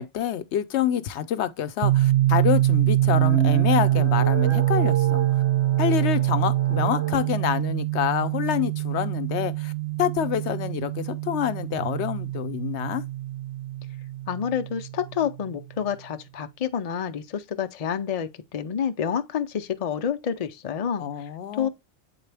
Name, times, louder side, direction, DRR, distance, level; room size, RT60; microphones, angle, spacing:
voice 1, 0.0-5.4 5.8-9.7 10.0-13.0 21.0-21.7, left 10 dB, 75° left, 0.9 m, -27 dB
sound 1, 1.8-15.4, right 15 dB, 55° right, 0.5 m, -24 dB
sound 2, 2.9-7.3, right 6 dB, 70° right, 1.3 m, -33 dB
voice 2, 14.3-21.0 21.5-21.7, left 8 dB, 50° left, 0.4 m, -28 dB
8.0 x 3.8 x 3.3 m
omnidirectional pair, 1.2 m